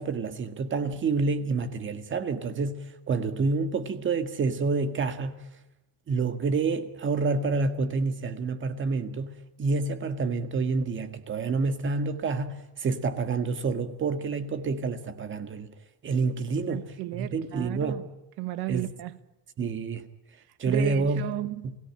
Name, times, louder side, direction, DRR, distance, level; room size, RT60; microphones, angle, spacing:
voice 1, 0.0-5.4 6.1-9.3 9.6-15.7 16.0-18.1 18.7-18.9 19.6-20.0 20.6-21.2 21.6-21.7, right 4 dB, 25° right, 1.8 m, -28 dB
voice 2, 16.6-18.0 18.4-19.2 20.7-21.8, right 16 dB, 60° right, 1.5 m, -34 dB
28.5 x 17.5 x 8.9 m
cardioid pair, 175°, 43 cm